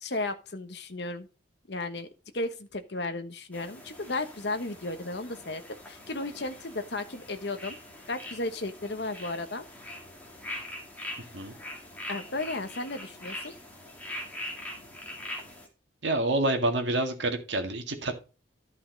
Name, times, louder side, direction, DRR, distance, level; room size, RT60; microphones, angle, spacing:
voice 1, 0.0-1.3 1.7-2.1 2.3-5.6 5.9-7.8 8.1-9.7 12.1-13.5, left 2 dB, 60° left, 8 dB, 1.2 m, -34 dB
sound 1, 3.5-15.7, left 1 dB, 10° left, 2.2 m, -43 dB
voice 2, 16.0-18.1, right 2 dB, 70° right, 5 dB, 2.0 m, -27 dB
11.5 x 5.7 x 4.0 m, 0.32 s
head